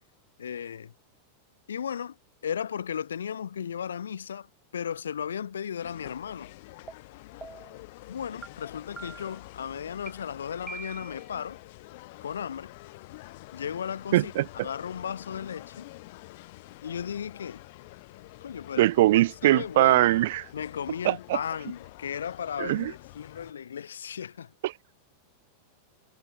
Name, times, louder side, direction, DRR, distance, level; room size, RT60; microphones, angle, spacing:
voice 1, 0.4-0.9 1.7-2.2 2.4-4.5 4.7-6.5 8.1-11.6 12.2-12.7 13.5-15.9 16.8-17.6 18.4-18.9 19.1-20.1 20.5-24.5, left 8 dB, 65° left, 3.0 m, -35 dB
sound 1, 5.8-23.5, left 21 dB, 50° left, 3.8 m, -48 dB
sound 2, 6.9-7.0 7.4-7.8 8.4-8.5 9.0-9.4 10.1-10.2 10.7-11.3, right 5 dB, 15° right, 6.3 m, -42 dB
voice 2, 14.1-14.7 18.8-20.4 21.0-21.4 22.6-22.9 24.6-24.7, right 16 dB, 55° right, 0.6 m, -22 dB
figure-of-eight pair, 90°, 0 cm